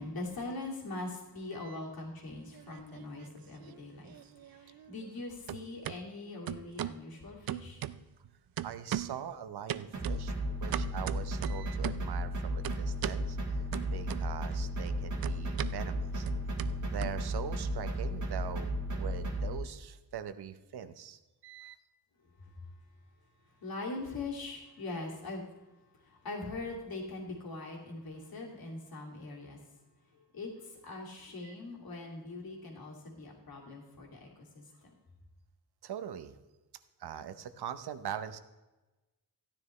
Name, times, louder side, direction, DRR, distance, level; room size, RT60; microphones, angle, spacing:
voice 1, 0.0-7.9 22.4-22.7 23.4-25.6 25.9-29.7 30.1-34.9, left 2 dB, 70° left, -1 dB, 2.6 m, -42 dB
sound 1, 2.3-3.3 3.6-5.2 5.5-6.0 6.5-7.0 7.5-8.3 8.6-9.2 9.7-12.1 12.6-13.2 13.7-14.6 14.8-17.7, right 11 dB, 65° right, 0.5 m, -39 dB
voice 2, 8.6-10.3 10.6-13.6 13.9-16.3 16.8-21.8 31.4-31.5 35.8-36.4 37.0-38.4, right 9 dB, 85° right, 11 dB, 0.8 m, -42 dB
sound 2, 9.9-19.6, right 1 dB, 50° right, 1.7 m, -34 dB
14.5 x 9.9 x 3.2 m, 1.1 s
wide cardioid pair, 130°, 38 cm